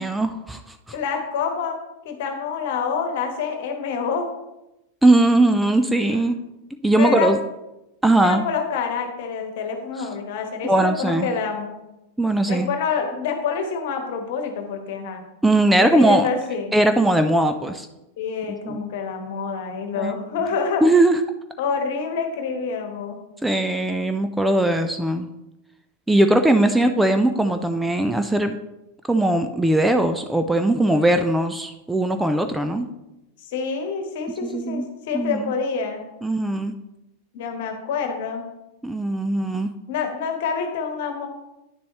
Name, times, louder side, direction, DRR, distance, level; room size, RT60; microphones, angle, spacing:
voice 1, 0.0-1.0 5.0-6.4 6.8-7.4 8.0-8.5 10.6-11.3 12.2-12.7 15.4-16.3 16.7-17.9 18.7-18.9 20.0-20.1 20.8-21.2 23.4-25.3 26.1-28.6 29.1-32.9 34.4-34.8 35.1-35.5 36.2-36.7 38.8-39.7, right 1 dB, 5° right, 7 dB, 0.4 m, -19 dB
voice 2, 0.9-1.8 2.0-4.3 6.0-6.1 7.0-7.3 8.2-11.8 12.5-15.2 15.8-16.7 18.2-20.8 21.6-23.2 33.4-36.0 37.3-38.5 39.9-41.3, left 5 dB, 50° left, 5 dB, 1.4 m, -27 dB
9.9 x 6.8 x 3.1 m, 0.94 s
figure-of-eight pair, 90°, 0 cm